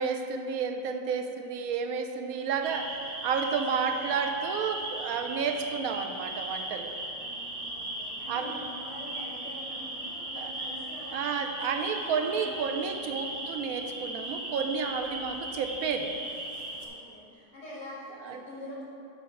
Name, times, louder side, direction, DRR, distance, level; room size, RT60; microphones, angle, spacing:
voice 1, 0.0-3.0 3.2-6.9 8.3-8.5 10.4-10.5 11.1-16.1 18.2-18.4, right 6 dB, 70° right, 5 dB, 1.0 m, -31 dB
sound 1, 2.6-16.9, right 1 dB, 35° right, 1.0 m, -37 dB
voice 2, 3.5-4.0 7.1-13.2 16.8-18.8, left 1 dB, 60° left, -11 dB, 2.5 m, -45 dB
10.0 x 3.5 x 6.3 m, 2.7 s
omnidirectional pair, 1.8 m